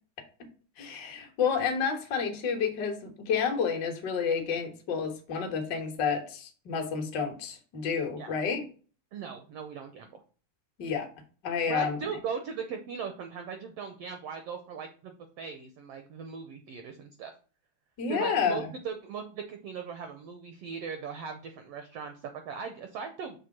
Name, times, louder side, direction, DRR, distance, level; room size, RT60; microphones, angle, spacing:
voice 1, 0.8-8.6 10.8-11.1 11.4-12.0 18.0-18.7, left 6 dB, 50° left, 3 dB, 1.3 m, -30 dB
voice 2, 9.1-10.2 11.7-17.3 18.1-23.4, right 6 dB, 80° right, 6 dB, 1.4 m, -39 dB
6.7 x 3.4 x 5.9 m, 0.38 s
omnidirectional pair, 3.6 m